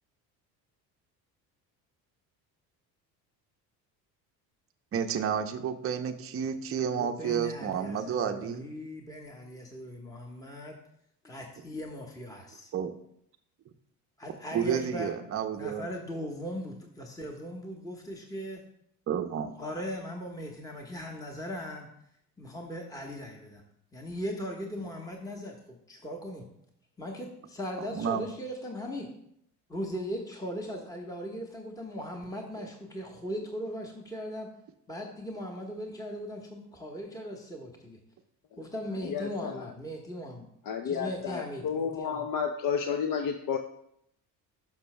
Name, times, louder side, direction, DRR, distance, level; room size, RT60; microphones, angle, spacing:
voice 1, 4.9-8.7 12.7-12.9 14.5-15.9 19.1-19.5 27.9-28.3 32.6-32.7, right 7 dB, 25° right, 5 dB, 0.7 m, -31 dB
voice 2, 7.0-10.8 11.2-12.7 14.2-15.2 15.6-18.6 19.6-21.9 22.4-23.6 23.9-26.4 27.0-29.1 29.7-34.5 34.9-38.0 38.6-40.5 40.8-42.2, equal, 5° left, 1 dB, 1.3 m, -39 dB
voice 3, 39.0-39.6 40.7-43.6, left 7 dB, 40° left, 6 dB, 0.7 m, -31 dB
12.0 x 6.0 x 2.2 m, 0.74 s
hypercardioid pair, 60°, 50 cm